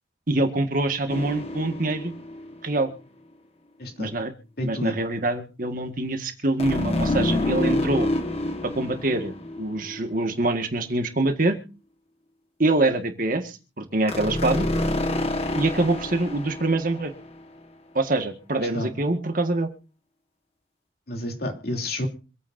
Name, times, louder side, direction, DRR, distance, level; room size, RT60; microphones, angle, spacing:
voice 1, 0.3-2.1 2.6-2.9 4.0-4.3 4.6-8.1 8.6-11.6 12.6-14.7 15.6-17.1 18.0-19.7, right 2 dB, 45° right, 6 dB, 1.8 m, -25 dB
sound 1, 1.1-2.7 6.6-10.3 14.1-17.4, left 1 dB, 35° left, 1.5 m, -28 dB
voice 2, 3.8-4.1 4.6-5.0 18.6-18.9 21.1-22.1, left 1 dB, 55° left, 2 dB, 3.1 m, -30 dB
26.5 x 9.4 x 2.7 m, 0.35 s
head